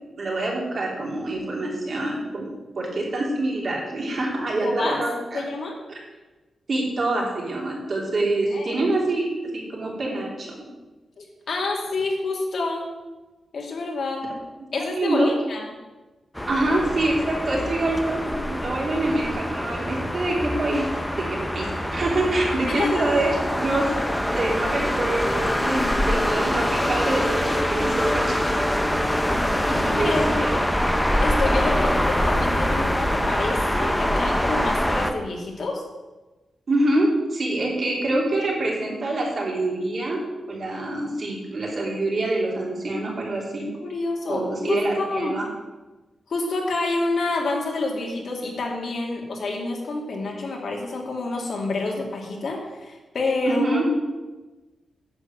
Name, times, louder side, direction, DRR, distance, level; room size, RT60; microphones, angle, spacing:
voice 1, 0.0-2.5 2.7-5.4 6.7-10.5 14.9-15.3 16.5-20.9 21.1-23.9 24.3-28.7 29.7-30.5 36.7-40.2 40.5-43.7 44.3-45.5 53.4-53.8, right 2 dB, 45° right, -2 dB, 3.1 m, -25 dB
voice 2, 4.6-5.0 5.3-5.8 8.5-8.8 11.2-12.8 13.5-14.2 14.7-15.7 22.7-23.0 29.4-30.3 31.2-35.8 43.8-45.4 46.3-54.0, left 3 dB, 55° left, -1 dB, 2.5 m, -28 dB
sound 1, 16.4-35.1, equal, 5° left, 0.8 m, -24 dB
9.8 x 7.1 x 7.9 m, 1.2 s
wide cardioid pair, 155°, 0 cm